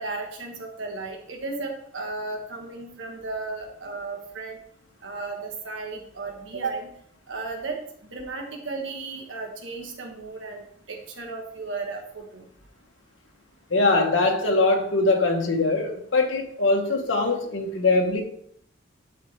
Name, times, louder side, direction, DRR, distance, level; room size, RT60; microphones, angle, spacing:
voice 1, 0.0-4.6 5.0-6.9 7.3-7.8 8.1-10.6 10.9-12.4, right 3 dB, 80° right, 1.3 m, -34 dB
voice 2, 13.7-18.2, left 3 dB, 85° left, 1.2 m, -22 dB
11.5 x 4.4 x 3.3 m
head